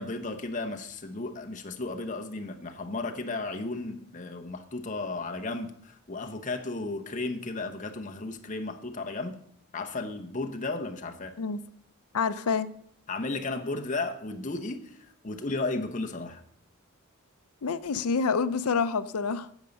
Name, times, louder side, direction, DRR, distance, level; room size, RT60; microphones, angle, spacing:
voice 1, 0.0-9.4 9.7-11.3 13.1-16.4, left 2 dB, 35° left, 5 dB, 0.9 m, -34 dB
voice 2, 12.1-12.7 17.6-19.6, left 5 dB, 85° left, 14 dB, 0.6 m, -27 dB
11.0 x 8.1 x 5.3 m, 0.71 s
head